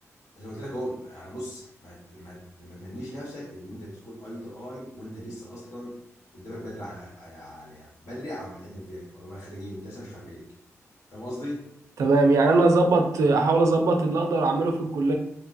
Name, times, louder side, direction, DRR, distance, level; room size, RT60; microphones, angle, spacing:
voice 1, 0.4-6.0 6.3-10.4 11.1-11.6, equal, 75° left, -7 dB, 1.4 m, -39 dB
voice 2, 12.0-15.2, right 3 dB, 70° right, 4 dB, 0.4 m, -21 dB
2.7 x 2.2 x 2.5 m, 0.75 s
wide cardioid pair, 175°, 6 cm